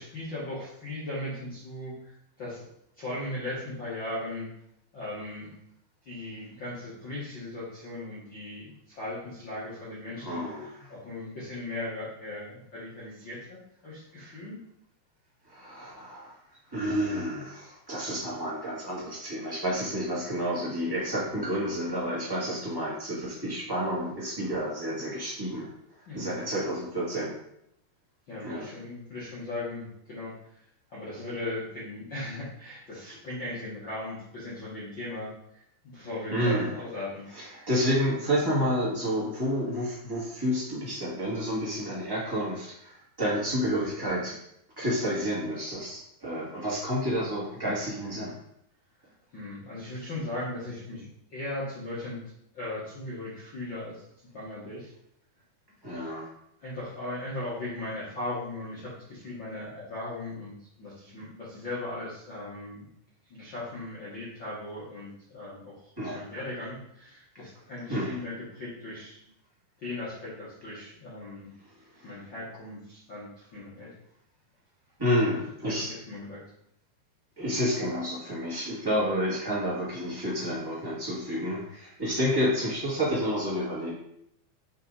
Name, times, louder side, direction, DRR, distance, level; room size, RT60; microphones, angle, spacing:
voice 1, 0.0-2.6 3.0-4.5 4.9-5.5 6.0-10.4 10.9-13.6 13.8-14.6 26.1-26.4 28.3-30.3 30.9-37.7 49.3-51.0 51.3-52.2 52.5-54.0 54.3-54.9 56.6-62.9 63.3-69.2 69.8-71.5 72.0-73.9 75.7-76.4, left 2 dB, 50° left, -9 dB, 1.4 m, -38 dB
voice 2, 10.2-10.9 15.5-16.3 16.7-25.7 26.1-27.3 28.4-28.7 36.3-36.7 37.3-44.4 44.8-48.3 55.8-56.3 66.0-66.2 67.9-68.2 71.9-72.1 75.0-75.9 77.4-83.9, equal, 15° right, -7 dB, 0.9 m, -30 dB
8.0 x 3.9 x 4.2 m, 0.76 s
omnidirectional pair, 4.7 m